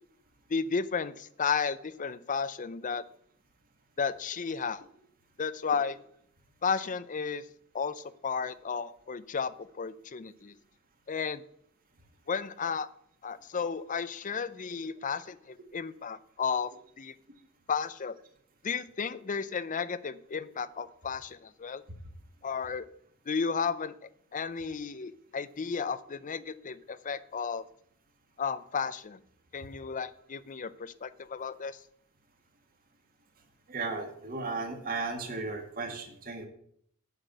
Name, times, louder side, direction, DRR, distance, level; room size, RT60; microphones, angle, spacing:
voice 1, 0.5-3.0 4.0-4.9 5.4-6.0 6.6-7.4 7.7-10.5 11.1-11.4 12.3-12.9 13.2-16.7 17.0-17.1 17.7-18.2 18.6-21.8 22.4-22.9 23.3-23.9 24.3-27.6 28.4-29.2 29.5-31.8, left 5 dB, 35° left, 16 dB, 0.5 m, -33 dB
voice 2, 33.7-36.5, right 3 dB, 40° right, 4 dB, 1.9 m, -35 dB
8.2 x 5.9 x 7.9 m, 0.66 s
head